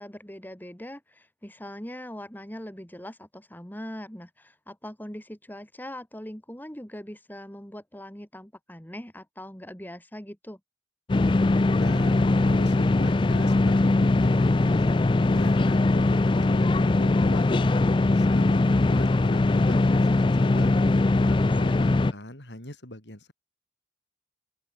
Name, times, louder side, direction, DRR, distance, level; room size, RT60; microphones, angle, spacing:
voice 1, 0.0-10.6 21.3-21.8, equal, 10° left, 3.1 m, -41 dB
sound 1, 11.1-22.1, left 2 dB, 25° left, 0.4 m, -21 dB
voice 2, 11.7-17.5 18.0-20.8 21.3-23.3, left 1 dB, 65° left, 6.1 m, -40 dB
open air
head